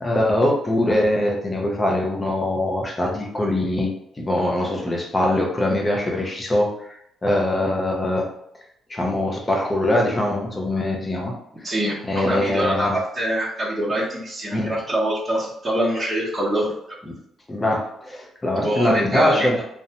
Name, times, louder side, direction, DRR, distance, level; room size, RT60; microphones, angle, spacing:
voice 1, 0.0-8.3 8.9-11.4 12.1-13.0 14.5-14.7 17.5-19.6, left 1 dB, 20° left, 0 dB, 0.6 m, -22 dB
voice 2, 11.6-17.0 18.6-19.6, right 1 dB, 15° right, -9 dB, 0.9 m, -24 dB
2.5 x 2.1 x 2.8 m, 0.75 s
cardioid pair, 90°, 0 cm